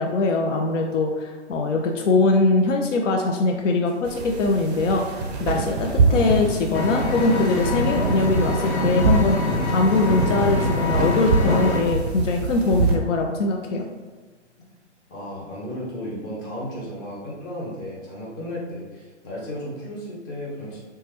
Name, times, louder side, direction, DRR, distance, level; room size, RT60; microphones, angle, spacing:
voice 1, 0.0-9.4 9.7-13.8, left 3 dB, 80° left, 2 dB, 0.5 m, -22 dB
sound 1, 3.8-5.0 5.7-6.8 7.0-7.1 7.9-8.7 9.0-9.1 10.1-10.7 11.5-12.1 13.7-14.2, equal, ahead, 1.4 m, -35 dB
sound 2, 4.1-13.0, right 4 dB, 35° right, 0.4 m, -25 dB
Engine, 6.7-11.8, left 2 dB, 65° left, 0.9 m, -25 dB
voice 2, 15.1-20.8, equal, 20° left, -5 dB, 0.6 m, -34 dB
3.1 x 2.2 x 2.9 m, 1.3 s
hypercardioid pair, 140°, 36 cm